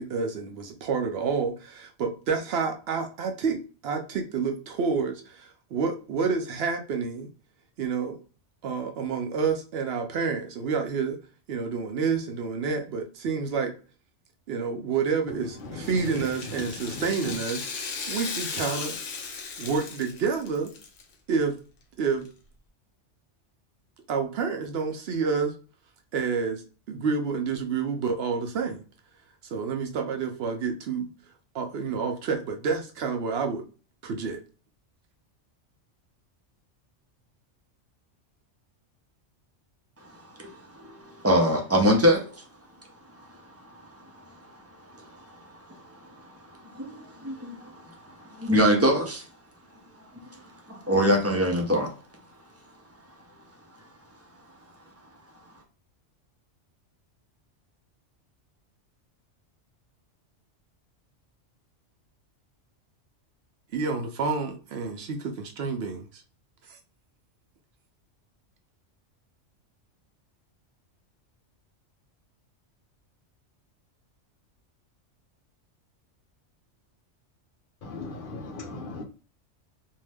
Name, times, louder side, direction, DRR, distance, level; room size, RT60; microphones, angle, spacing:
voice 1, 0.0-7.3 7.8-8.2 8.6-11.2 11.5-13.7 14.5-17.7 18.1-19.0 19.6-20.7 21.3-21.6 22.0-22.3 24.1-25.5 26.1-26.6 26.9-28.8 29.4-31.1 31.5-33.6 34.0-34.4 63.7-66.2 66.7-66.8, right 5 dB, 65° right, 5 dB, 0.7 m, -29 dB
voice 2, 15.6-17.4 77.8-79.0, left 2 dB, 50° left, 1 dB, 0.8 m, -38 dB
Rattle (instrument), 15.8-21.0 21.3-21.4 22.3-22.4, left 5 dB, 80° left, 1.1 m, -36 dB
voice 3, 40.4-42.4 45.0-45.4 45.7-45.8 46.7-49.2 50.7-51.9, equal, 20° right, 1 dB, 0.4 m, -24 dB
2.6 x 2.1 x 3.3 m, 0.37 s
omnidirectional pair, 1.2 m